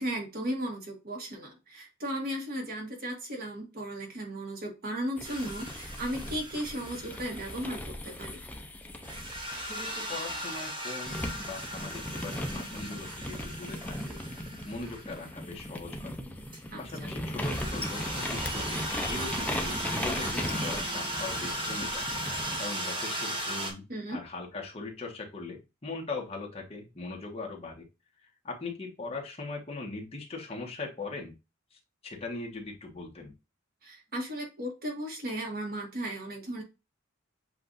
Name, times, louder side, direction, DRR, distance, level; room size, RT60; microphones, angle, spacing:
voice 1, 0.0-8.4 16.7-17.1 23.9-24.2 33.8-36.6, right 1 dB, 50° right, 1 dB, 1.2 m, -36 dB
sound 1, 5.2-10.6 11.1-22.7, left 1 dB, 10° left, 0.5 m, -38 dB
sound 2, 5.2-7.7 9.0-15.2 16.5-16.6 17.4-23.7, right 1 dB, 25° right, 1.4 m, -37 dB
voice 2, 9.6-14.2 14.6-16.1 16.8-22.1 22.6-23.8 24.1-27.8 28.4-31.3 31.7-31.8 32.0-33.3, left 3 dB, 30° left, 0 dB, 1.3 m, -40 dB
7.6 x 2.5 x 2.5 m, 0.27 s
head